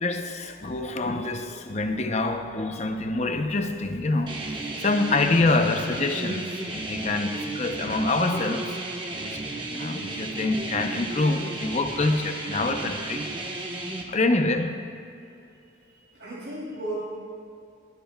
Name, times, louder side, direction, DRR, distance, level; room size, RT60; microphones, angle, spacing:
voice 1, 0.0-4.3 4.8-8.8 9.2-9.4 9.7-13.3 14.1-14.8, left 2 dB, 35° left, 6 dB, 0.6 m, -26 dB
sound 1, 4.3-14.0, right 2 dB, 25° right, 1.0 m, -33 dB
voice 2, 13.9-14.5 15.2-15.3 15.9-17.0, right 1 dB, 55° right, -9 dB, 2.9 m, -37 dB
23.0 x 10.5 x 2.3 m, 2.6 s
head